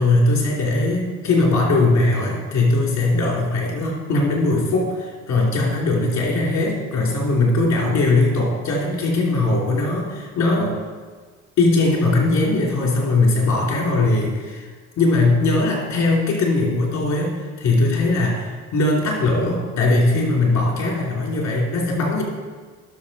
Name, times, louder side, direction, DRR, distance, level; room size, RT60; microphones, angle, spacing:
voice 1, 0.0-10.8 11.6-14.7 15.0-22.2, left 2 dB, 65° left, -2 dB, 3.0 m, -20 dB
11.0 x 6.6 x 4.2 m, 1.5 s
cardioid pair, 90°, 30 cm